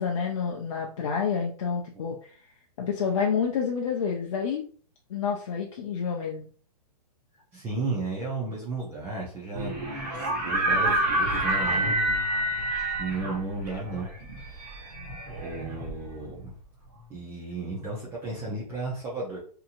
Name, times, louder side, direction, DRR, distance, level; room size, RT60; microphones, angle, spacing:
voice 1, 0.0-2.3 2.8-4.6 5.1-6.5, left 6 dB, 50° left, 0 dB, 0.5 m, -28 dB
voice 2, 7.5-9.8 10.1-12.6 13.0-14.1 14.4-14.9 15.2-16.5 17.1-19.4, right 3 dB, 10° right, -6 dB, 0.4 m, -34 dB
sound 1, 9.5-16.4, right 1 dB, 35° right, 1.2 m, -28 dB
2.8 x 2.5 x 2.5 m, 0.43 s
hypercardioid pair, 155°, 21 cm